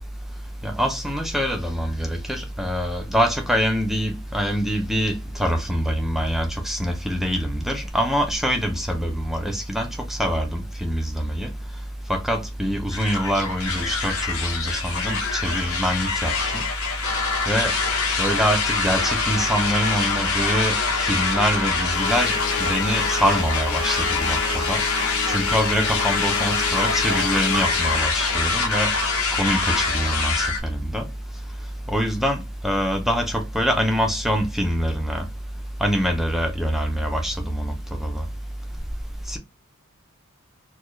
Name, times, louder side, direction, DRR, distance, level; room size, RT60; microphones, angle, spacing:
voice 1, 0.6-11.5 12.1-16.6 17.5-17.7 18.2-20.8 21.0-22.3 22.6-24.8 25.3-28.9 29.3-31.1 31.9-35.2 35.8-38.2 39.3-39.4, equal, ahead, 0.7 m, -24 dB
sound 1, 12.9-30.6, left 4 dB, 75° left, 1.1 m, -24 dB
sound 2, 21.9-28.1, left 9 dB, 50° left, 0.5 m, -33 dB
4.2 x 2.4 x 3.1 m
head